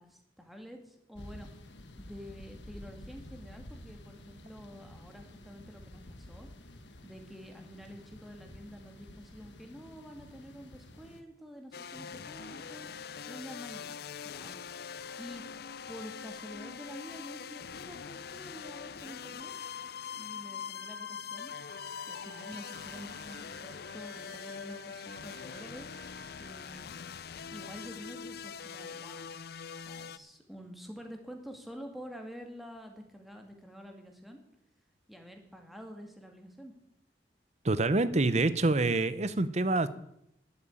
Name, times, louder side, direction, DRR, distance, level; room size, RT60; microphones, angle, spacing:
voice 1, 0.0-1.5 2.0-12.9 13.3-14.0 14.2-14.5 15.2-15.4 15.9-19.5 20.1-21.5 22.1-26.1 26.4-26.9 27.5-29.4 29.7-34.4 35.1-36.7, equal, ahead, 3 dB, 2.1 m, -48 dB
sound 1, 1.1-11.2, left 1 dB, 90° left, 1.5 m, -50 dB
sound 2, 11.7-30.2, left 7 dB, 60° left, 0.5 m, -43 dB
sound 3, 20.7-26.8, right 6 dB, 55° right, 2.7 m, -55 dB
voice 2, 37.6-39.9, right 2 dB, 40° right, 14 dB, 0.8 m, -26 dB
11.5 x 8.8 x 8.9 m, 0.79 s
head